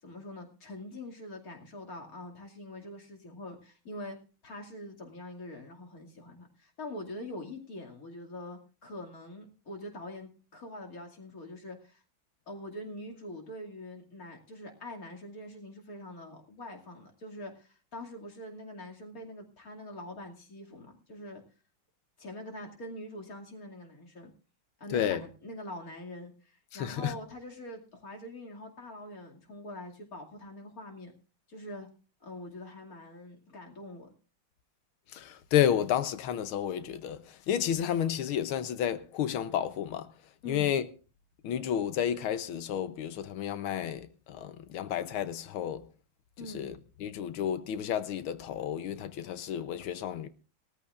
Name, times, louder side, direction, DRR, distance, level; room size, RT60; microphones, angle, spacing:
voice 1, 0.0-4.2 4.4-12.0 12.5-21.4 22.2-24.3 24.8-31.1 31.5-31.9 32.2-34.1 40.4-40.7 46.4-46.7, left 1 dB, 45° left, 2.8 m, -44 dB
voice 2, 24.9-25.2 26.7-27.1 35.1-40.1 40.5-40.8 41.4-45.8 46.5-46.7 47.0-50.3, left 9 dB, 85° left, 1.7 m, -31 dB
19.5 x 14.0 x 2.5 m
omnidirectional pair, 2.2 m